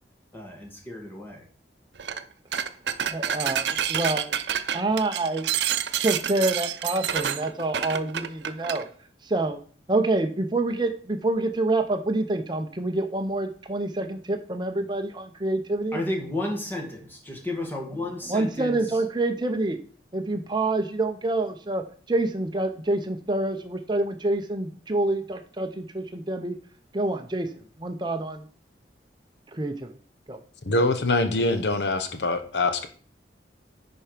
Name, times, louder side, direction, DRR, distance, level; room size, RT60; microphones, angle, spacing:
voice 1, 0.3-1.4 15.9-18.8, left 1 dB, 10° left, 1.9 m, -32 dB
sound 1, 2.0-2.2 2.5-8.8, right 9 dB, 80° right, 0.6 m, -28 dB
voice 2, 3.1-4.4 4.7-5.5 6.0-8.9 9.2-9.6 9.9-16.0 18.3-19.8 20.1-26.6 26.9-27.5 27.8-28.5 29.5-29.9 30.3-30.4, right 2 dB, 25° right, 0.7 m, -27 dB
voice 3, 30.6-32.9, left 2 dB, 80° left, 0.9 m, -24 dB
10.5 x 4.6 x 5.0 m
head